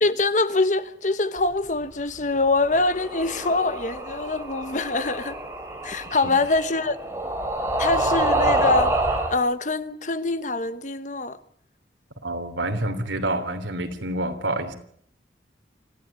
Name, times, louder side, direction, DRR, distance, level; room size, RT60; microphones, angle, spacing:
voice 1, 0.0-5.4 5.8-7.0 7.8-9.0 9.3-11.4, left 3 dB, 40° left, 1.1 m, -24 dB
sound 1, 2.6-9.4, right 1 dB, 15° right, 3.5 m, -27 dB
voice 2, 12.2-14.7, right 1 dB, 80° right, 3.2 m, -27 dB
26.0 x 15.5 x 9.0 m
head